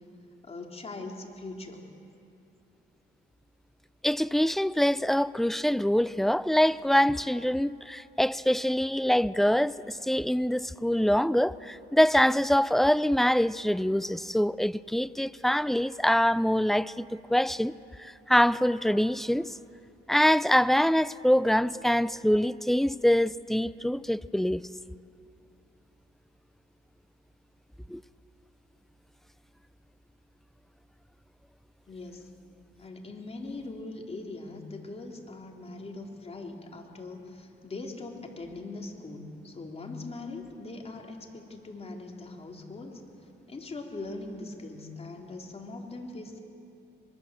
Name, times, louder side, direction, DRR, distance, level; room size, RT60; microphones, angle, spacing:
voice 1, 0.4-1.8 31.9-32.3 32.8-43.0 43.5-46.4, left 2 dB, 30° left, 3.7 m, -41 dB
voice 2, 4.0-17.7 18.0-19.5 20.1-24.6 27.9-28.0, equal, ahead, 0.5 m, -24 dB
24.0 x 22.5 x 7.7 m
cardioid pair, 90°, 20 cm